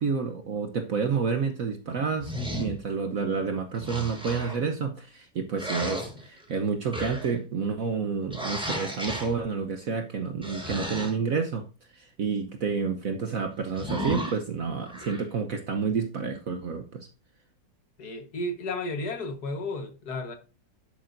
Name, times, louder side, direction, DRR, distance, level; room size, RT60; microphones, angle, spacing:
voice 1, 0.0-11.7 11.9-17.1, right 5 dB, 55° right, 1.2 m, -29 dB
sound 1, 2.2-2.8 3.8-4.6 5.5-6.5 6.9-7.4 8.3-9.3 10.4-11.1 13.7-14.3 14.8-15.2, equal, 5° right, 4.2 m, -34 dB
voice 2, 18.0-20.4, left 2 dB, 55° left, 1.9 m, -33 dB
10.5 x 8.7 x 2.6 m
omnidirectional pair, 2.0 m